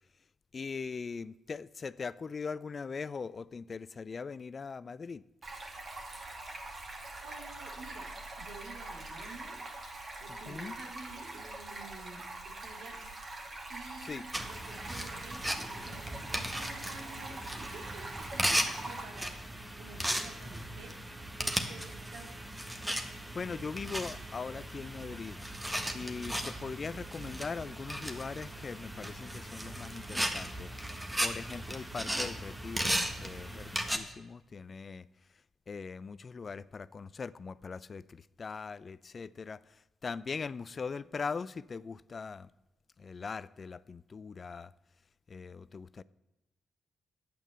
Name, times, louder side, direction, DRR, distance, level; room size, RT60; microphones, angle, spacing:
voice 1, 0.5-5.2 10.3-10.7 14.0-14.2 23.3-25.4 25.9-35.1 35.7-42.5 43.0-44.7 45.3-46.0, left 5 dB, 45° left, 0.4 m, -41 dB
Stream, 5.4-19.0, right 2 dB, 50° right, 2.5 m, -44 dB
voice 2, 7.2-8.1 8.4-9.6 10.2-13.4 13.7-19.4 19.8-21.0 21.4-22.3, right 3 dB, 80° right, 2.5 m, -50 dB
sound 1, 14.3-34.0, right 1 dB, 10° right, 1.6 m, -36 dB
8.9 x 8.7 x 7.7 m
supercardioid pair, 50°, 0 cm